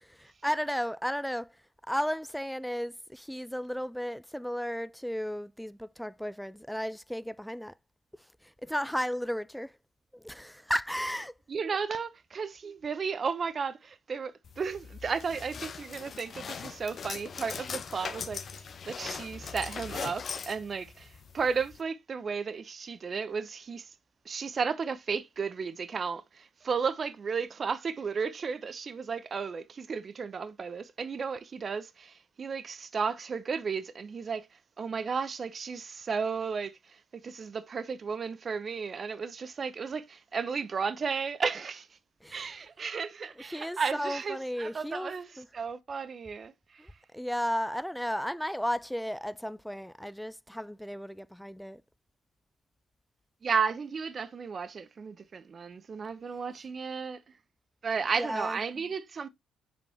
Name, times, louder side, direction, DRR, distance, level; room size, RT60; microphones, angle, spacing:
voice 1, 0.0-1.5 1.9-7.7 8.6-9.7 10.1-11.3 42.2-42.5 43.4-45.5 46.8-51.8 58.1-58.6, equal, ahead, 0.3 m, -34 dB
voice 2, 11.5-23.9 24.2-34.5 34.8-41.9 42.3-46.9 53.4-57.2 57.8-59.3, right 5 dB, 45° right, 0.8 m, -34 dB
sound 1, 14.4-21.8, left 6 dB, 50° left, 0.8 m, -40 dB
7.1 x 5.3 x 2.9 m
cardioid pair, 90°, 0 cm